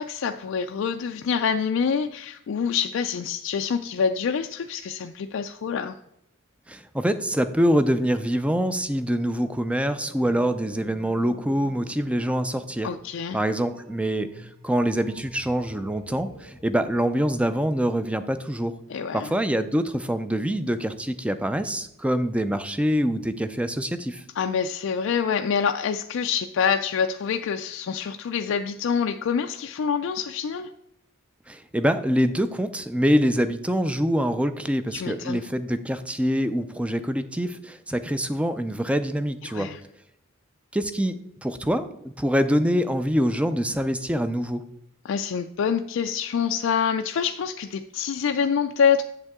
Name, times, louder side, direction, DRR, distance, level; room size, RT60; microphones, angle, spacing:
voice 1, 0.0-6.0 12.8-13.4 18.9-19.3 24.4-30.7 34.9-35.4 39.5-39.8 45.0-49.0, left 6 dB, 65° left, 6 dB, 0.3 m, -26 dB
voice 2, 6.7-12.9 13.3-18.7 19.1-24.2 31.5-39.7 40.7-41.2 41.4-44.6, equal, 5° right, 11 dB, 0.4 m, -25 dB
sound 1, 9.9-16.9, left 1 dB, 60° right, 2.0 m, -49 dB
8.0 x 6.7 x 3.6 m, 0.79 s
head